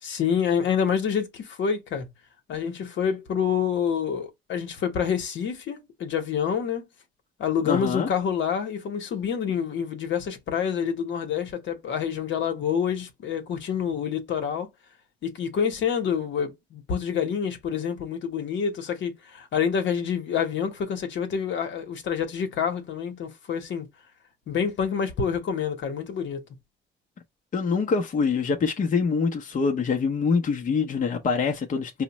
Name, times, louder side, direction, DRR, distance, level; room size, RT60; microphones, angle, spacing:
voice 1, 0.0-2.1 2.5-6.9 7.4-14.7 15.2-23.9 24.5-26.4, left 7 dB, 70° left, 1.0 m, -27 dB
voice 2, 7.7-8.1 27.5-32.0, left 5 dB, 40° left, 0.7 m, -25 dB
4.8 x 2.1 x 2.9 m
cardioid pair, 90°, 20 cm